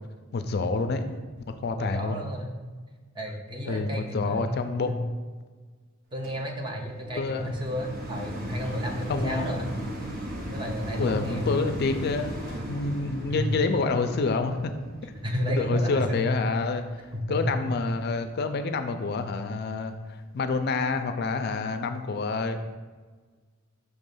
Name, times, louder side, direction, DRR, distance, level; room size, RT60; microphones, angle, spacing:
voice 1, 0.3-1.0 1.6-2.2 3.7-5.0 7.2-7.6 9.1-9.6 11.0-14.7 15.0-15.1 15.6-16.8 17.3-22.6, left 3 dB, 50° left, 8 dB, 0.4 m, -28 dB
voice 2, 1.8-2.5 3.1-5.0 6.1-9.7 10.5-11.5 13.3-13.5 15.2-16.3 17.1-17.7 22.5-22.6, equal, 20° right, 1 dB, 0.7 m, -32 dB
sound 1, 6.2-17.5 18.1-18.2, equal, 45° right, 1.0 m, -37 dB
6.0 x 3.1 x 5.3 m, 1.4 s
head